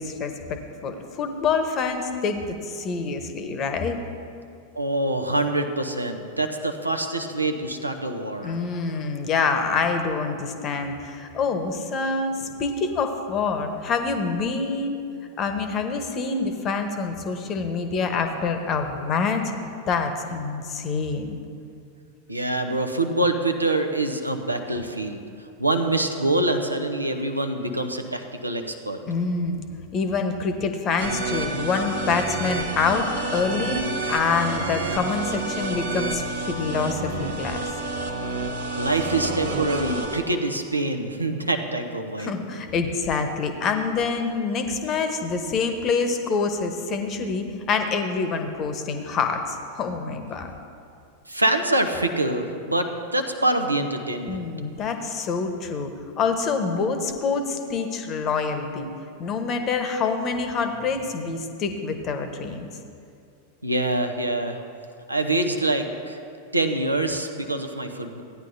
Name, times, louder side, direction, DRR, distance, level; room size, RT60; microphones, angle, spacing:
voice 1, 0.0-4.0 8.4-15.0 15.4-21.4 29.1-37.6 42.2-50.5 54.3-55.9 56.2-58.9 59.2-62.7, left 4 dB, 30° left, 7 dB, 1.0 m, -26 dB
voice 2, 4.8-8.6 22.3-25.2 25.6-29.0 38.8-42.3 51.3-54.4 63.6-64.6 65.1-66.2 66.5-68.2, right 2 dB, 85° right, 5 dB, 0.7 m, -25 dB
sound 1, 31.0-40.2, right 3 dB, 65° right, 1.1 m, -29 dB
16.0 x 9.8 x 2.6 m, 2.4 s
figure-of-eight pair, 90°, 0 cm